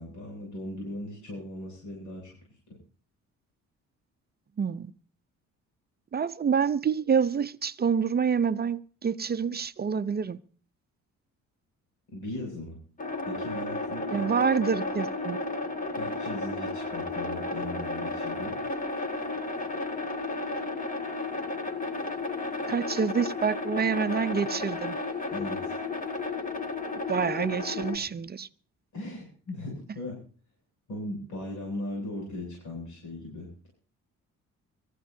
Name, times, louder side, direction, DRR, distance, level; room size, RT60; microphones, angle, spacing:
voice 1, 0.0-2.6 12.1-12.8 13.2-14.3 14.6-14.7 15.9-18.5 25.3-25.8 28.9-30.2 30.9-33.7, left 1 dB, 75° left, 7.4 m, -38 dB
voice 2, 4.6-4.9 6.1-10.4 14.1-15.4 22.7-25.0 27.1-28.5, right 6 dB, 30° right, 0.6 m, -27 dB
sound 1, 13.0-28.0, left 3 dB, 25° left, 2.2 m, -33 dB
24.5 x 14.5 x 2.7 m
cardioid pair, 90°, 30 cm